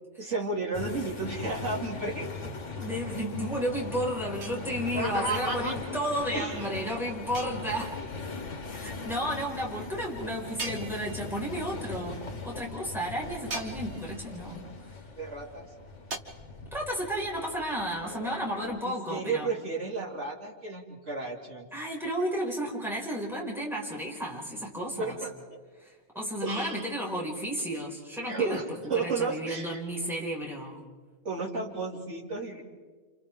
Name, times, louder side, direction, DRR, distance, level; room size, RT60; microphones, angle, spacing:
voice 1, 0.2-2.3 4.9-5.7 6.3-6.7 15.2-15.7 18.8-21.7 25.0-25.6 26.4-26.8 28.2-29.8 31.2-32.6, right 3 dB, 85° right, -3 dB, 3.2 m, -33 dB
sound 1, 0.7-18.8, left 3 dB, 85° left, 1.8 m, -39 dB
voice 2, 2.7-8.0 8.7-14.6 16.7-19.5 21.7-25.2 25.8-28.6 28.9-30.8, equal, ahead, -4 dB, 5.2 m, -33 dB
sound 2, 4.4-5.1 7.3-8.1 10.6-11.5 13.5-14.3 16.1-16.2, right 3 dB, 65° right, 1.8 m, -40 dB
29.0 x 29.0 x 3.8 m, 1.4 s
omnidirectional pair, 1.2 m